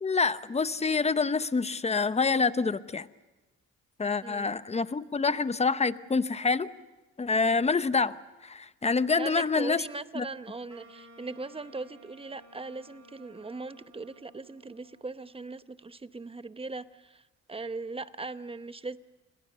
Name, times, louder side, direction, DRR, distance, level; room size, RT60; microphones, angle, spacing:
voice 1, 0.0-3.1 4.0-6.7 7.2-9.8 10.1-10.3, left 4 dB, 20° left, 14 dB, 0.8 m, -27 dB
voice 2, 9.2-17.2 17.5-19.0, right 3 dB, 20° right, 13 dB, 0.9 m, -39 dB
Wind instrument woodwind instrument, 10.7-15.7, right 1 dB, 60° right, 4.3 m, -56 dB
29.5 x 21.5 x 6.8 m, 1.1 s
cardioid pair, 90°, 30 cm